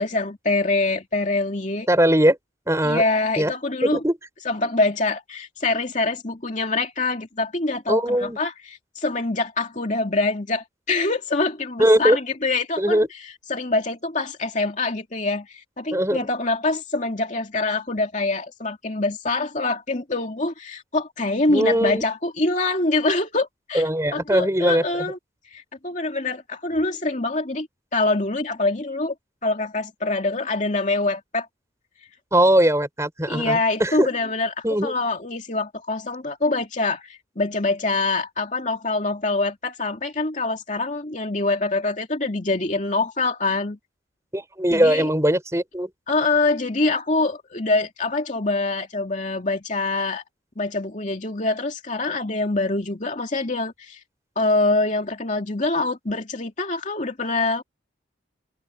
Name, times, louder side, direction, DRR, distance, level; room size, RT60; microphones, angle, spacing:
voice 1, 0.0-1.9 2.8-4.0 4.4-23.8 24.1-25.2 25.5-27.7 27.9-29.1 29.4-31.5 33.3-43.8 44.7-45.1 46.1-50.2 50.6-54.0 54.4-57.6, left 2 dB, 40° left, 2.7 m, -25 dB
voice 2, 1.9-2.4 2.7-3.0 3.4-3.5 3.8-4.2 7.9-8.4 11.8-12.2 12.8-13.1 15.9-16.2 21.5-22.0 23.7-25.1 32.3-34.1 34.6-34.9 44.3-45.9, right 1 dB, 15° right, 7.6 m, -20 dB
head